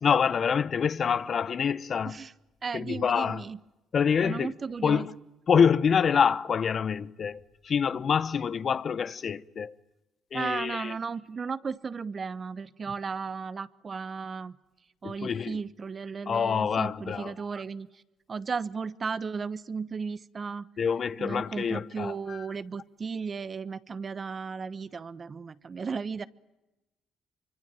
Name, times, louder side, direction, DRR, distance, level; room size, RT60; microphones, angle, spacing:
voice 1, 0.0-2.2 2.7-3.4 3.9-4.5 4.8-5.1 5.5-9.7 10.3-10.9 15.0-15.6 16.3-17.3 20.8-22.5, left 7 dB, 50° left, 0.9 m, -26 dB
voice 2, 2.6-3.6 4.2-5.1 10.3-14.6 15.0-18.0 18.3-20.7 21.2-26.3, right 5 dB, 40° right, 1.1 m, -35 dB
25.0 x 24.5 x 9.1 m
supercardioid pair, 75°, 0 cm